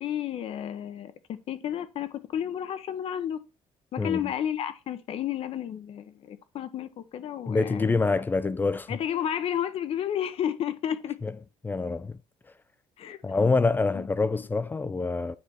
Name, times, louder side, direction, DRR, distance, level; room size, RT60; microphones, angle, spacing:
voice 1, 0.0-3.4 3.9-7.9 8.9-11.2 13.0-13.2 13.9-14.1, left 10 dB, 55° left, 0.8 m, -32 dB
voice 2, 4.0-4.3 7.5-9.0 11.2-11.3 11.6-12.2 13.2-15.3, left 3 dB, 15° left, 0.4 m, -26 dB
9.6 x 3.4 x 4.3 m
cardioid pair, 140°, 12 cm